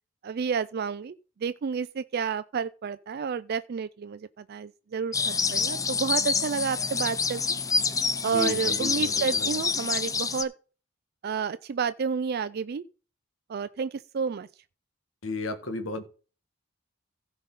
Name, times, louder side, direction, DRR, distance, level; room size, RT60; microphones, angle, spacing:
voice 1, 0.2-1.1 1.4-7.4 8.2-10.5 11.2-12.8 13.5-14.5, right 6 dB, 50° right, 0.4 m, -30 dB
sound 1, 5.1-10.4, left 5 dB, 15° left, 0.5 m, -27 dB
voice 2, 8.3-9.6 15.2-16.0, left 2 dB, 75° left, 1.6 m, -34 dB
15.5 x 5.3 x 4.1 m
head